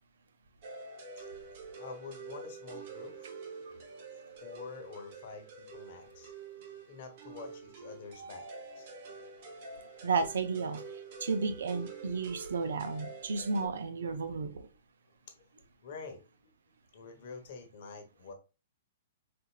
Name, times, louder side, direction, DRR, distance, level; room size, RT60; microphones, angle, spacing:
sound 1, 0.6-13.7, right 4 dB, 45° right, 0.9 m, -47 dB
voice 1, 1.8-3.3 4.4-6.3 6.9-8.5 8.7-8.9 15.3-16.5 16.9-18.3, left 4 dB, 50° left, 1.0 m, -47 dB
voice 2, 10.0-10.8 11.2-14.7, right 4 dB, 85° right, 0.6 m, -32 dB
4.4 x 2.5 x 2.4 m
hypercardioid pair, 155°, 0 cm